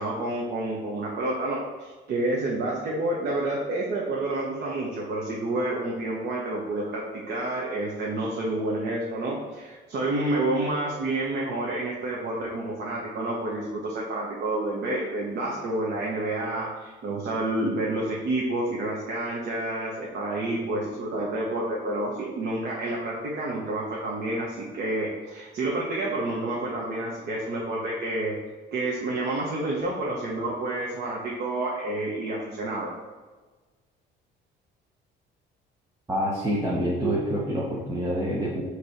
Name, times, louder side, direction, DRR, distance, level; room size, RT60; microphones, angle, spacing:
voice 1, 0.0-28.4 28.7-32.9, right 2 dB, 60° right, -4 dB, 1.2 m, -29 dB
voice 2, 36.1-38.6, equal, 15° right, -6 dB, 0.9 m, -27 dB
8.3 x 3.3 x 4.3 m, 1.3 s
cardioid pair, 155°, 19 cm